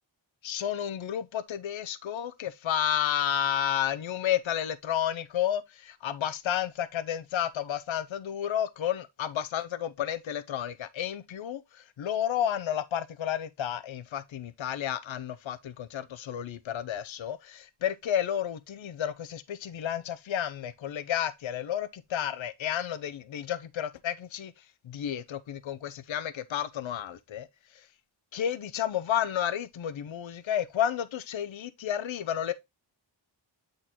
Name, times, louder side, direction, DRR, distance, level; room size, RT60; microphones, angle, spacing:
voice 1, 0.4-27.5 27.7-27.9 28.3-32.5, left 10 dB, 75° left, 0.7 m, -31 dB
8.9 x 3.8 x 2.9 m
wide cardioid pair, 90°, 47 cm